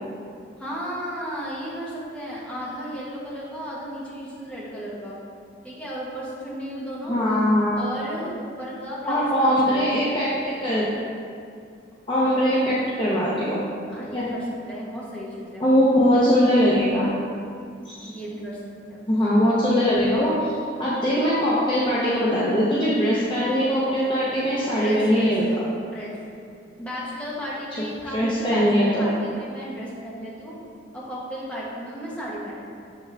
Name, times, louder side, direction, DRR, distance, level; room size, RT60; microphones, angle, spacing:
voice 1, 0.6-5.2 5.6-7.1 7.8-10.0 12.2-12.6 13.9-15.7 18.0-18.6 18.9-19.2 24.7-25.3 25.9-26.2 26.8-30.6 30.9-32.5, equal, 5° left, -7 dB, 1.3 m, -34 dB
voice 2, 7.1-7.8 9.0-10.9 12.1-13.6 14.1-14.3 15.6-17.1 17.9-18.1 19.1-20.5 20.8-25.6 28.1-29.0, equal, 25° left, -8 dB, 0.8 m, -21 dB
7.0 x 5.8 x 3.4 m, 2.4 s
head